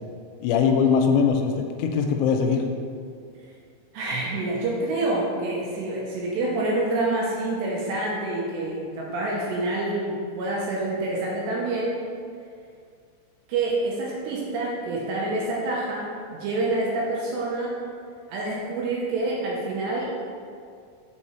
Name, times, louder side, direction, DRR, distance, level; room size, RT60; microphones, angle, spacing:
voice 1, 0.4-2.7, left 6 dB, 85° left, 4 dB, 2.9 m, -21 dB
voice 2, 3.9-12.0 13.5-17.8 18.3-20.1, right 2 dB, 80° right, -4 dB, 2.7 m, -27 dB
6.6 x 4.6 x 4.3 m, 2.2 s
omnidirectional pair, 5.5 m